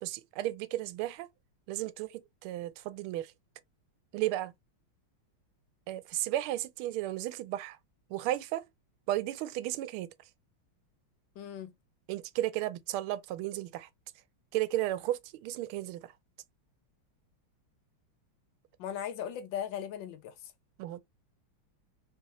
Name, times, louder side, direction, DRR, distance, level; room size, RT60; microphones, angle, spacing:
voice 1, 0.0-1.3 1.7-3.3 4.1-4.5 5.9-7.8 8.1-8.6 9.1-10.1 12.1-13.9 14.5-16.1 20.8-21.0, right 15 dB, 85° right, 1.5 m, -34 dB
voice 2, 11.3-11.7 18.8-20.5, left 9 dB, 65° left, 1.4 m, -38 dB
4.7 x 3.2 x 2.9 m
omnidirectional pair, 2.3 m